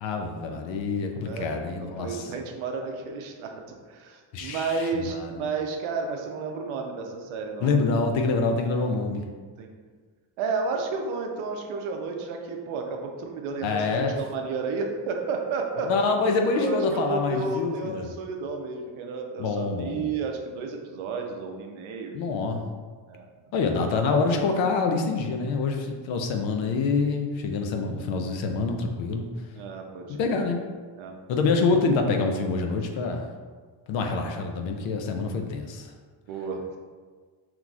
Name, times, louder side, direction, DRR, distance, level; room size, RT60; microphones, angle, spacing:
voice 1, 0.0-2.3 4.3-5.3 7.6-9.2 13.6-14.1 15.9-18.1 19.4-20.1 22.1-22.6 23.5-29.3 30.1-30.6 31.3-33.3 33.9-35.9, left 4 dB, 65° left, 4 dB, 0.6 m, -26 dB
voice 2, 1.2-1.5 1.8-7.8 8.8-9.0 9.6-9.7 10.4-15.9 16.5-22.2 23.1-23.5 29.5-30.4 31.0-31.2 36.3-36.8, right 4 dB, 70° right, 3 dB, 0.7 m, -32 dB
3.9 x 3.0 x 2.3 m, 1.5 s
cardioid pair, 140°, 50 cm